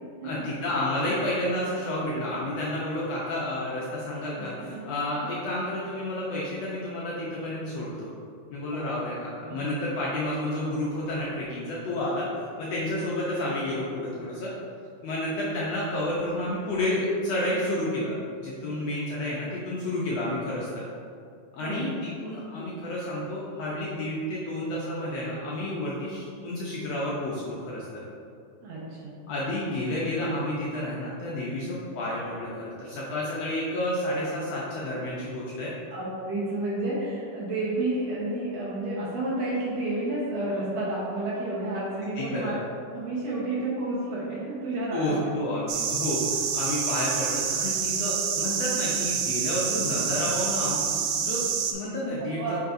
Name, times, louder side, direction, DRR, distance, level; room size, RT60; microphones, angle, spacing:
voice 1, 0.2-8.1 8.5-12.3 12.6-14.5 15.0-20.8 21.5-28.0 29.3-35.7 42.1-42.6 44.9-50.9 51.2-52.6, left 1 dB, 70° left, -6 dB, 1.6 m, -30 dB
voice 2, 4.4-4.9 5.2-5.3 8.7-9.0 9.4-9.6 17.5-17.6 18.6-18.7 21.6-21.8 28.6-29.1 35.9-42.5 42.9-45.3 52.4-52.6, right 2 dB, 65° right, -7 dB, 1.8 m, -31 dB
sound 1, 45.7-51.7, right 7 dB, 80° right, 2.1 m, -27 dB
8.1 x 4.7 x 2.6 m, 2.4 s
omnidirectional pair, 3.6 m